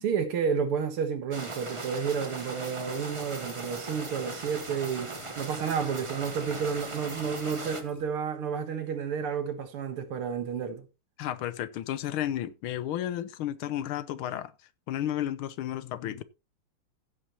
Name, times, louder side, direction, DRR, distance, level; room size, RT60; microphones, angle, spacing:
voice 1, 0.0-10.8, right 6 dB, 85° right, 2.3 m, -31 dB
sound 1, 1.3-7.8, right 2 dB, 20° right, 0.8 m, -39 dB
sound 2, 2.8-8.0, left 2 dB, 30° left, 5.1 m, -52 dB
voice 2, 11.2-14.5 14.9-16.2, left 12 dB, 80° left, 1.5 m, -32 dB
15.5 x 8.0 x 2.9 m
omnidirectional pair, 2.4 m